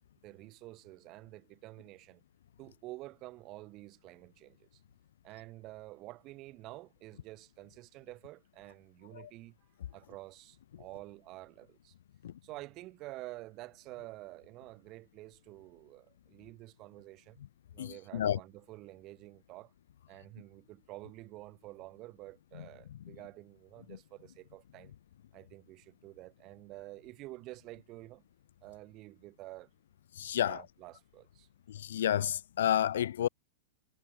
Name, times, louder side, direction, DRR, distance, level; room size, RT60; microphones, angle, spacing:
voice 1, 0.2-2.2 2.6-4.8 5.2-9.6 9.9-11.9 12.4-17.4 17.7-19.7 20.1-24.9 25.3-28.2 28.6-29.7 30.4-31.5, right 19 dB, 40° right, 1.8 m, -49 dB
voice 2, 17.8-18.4 22.5-23.2 23.9-24.0 30.1-30.7 31.7-33.3, left 11 dB, 75° left, 0.4 m, -32 dB
hypercardioid pair, 110°, 0 cm